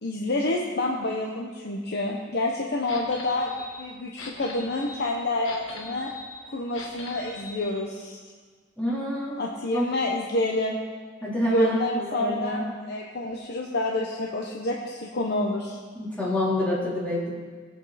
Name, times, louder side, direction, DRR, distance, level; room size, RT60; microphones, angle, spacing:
voice 1, 0.0-6.1 6.5-8.2 9.4-10.8 11.5-15.8, left 2 dB, 55° left, -1 dB, 1.0 m, -28 dB
sound 1, 2.9-7.7, left 2 dB, 70° left, 1.5 m, -42 dB
voice 2, 8.8-9.4 9.7-9.9 11.2-12.6 15.9-17.3, left 1 dB, 5° left, -8 dB, 3.6 m, -27 dB
18.0 x 8.1 x 4.2 m, 1.5 s
head